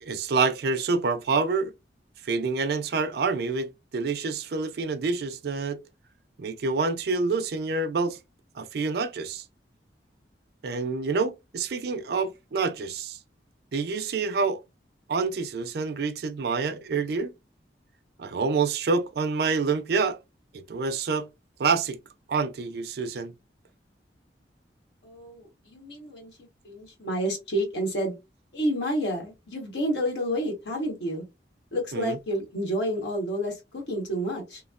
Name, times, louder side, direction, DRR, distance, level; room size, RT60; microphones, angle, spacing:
voice 1, 0.0-1.7 2.2-5.8 6.4-8.2 8.6-9.4 10.6-13.2 13.7-14.6 15.1-17.3 18.2-20.2 20.5-21.3 21.6-22.0 22.3-23.3 31.9-32.2, right 4 dB, 60° right, 0.4 m, -27 dB
voice 2, 25.0-26.3 26.6-28.1 28.5-31.2 31.7-34.6, equal, 80° left, 1.2 m, -29 dB
3.0 x 2.0 x 2.4 m
head